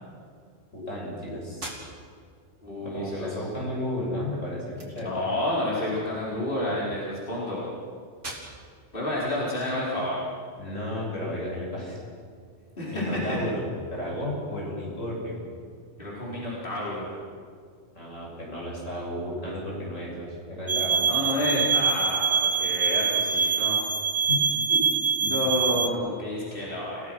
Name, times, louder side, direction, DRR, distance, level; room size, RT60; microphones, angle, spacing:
voice 1, 0.7-1.7 2.8-5.2 10.6-12.0 12.6-15.4 17.9-21.1 24.3-24.9 25.2-25.3, left 1 dB, 80° left, -3 dB, 7.6 m, -33 dB
sound 1, 1.5-10.4, right 1 dB, 65° right, 3.9 m, -47 dB
voice 2, 2.6-3.3 5.0-7.6 8.9-10.2 12.8-13.4 16.0-17.1 21.1-23.8 25.2-27.1, left 1 dB, 45° left, -6 dB, 4.8 m, -29 dB
sound 2, 20.7-25.9, right 6 dB, 20° right, 0.7 m, -24 dB
29.5 x 17.5 x 6.3 m, 2.1 s
omnidirectional pair, 1.3 m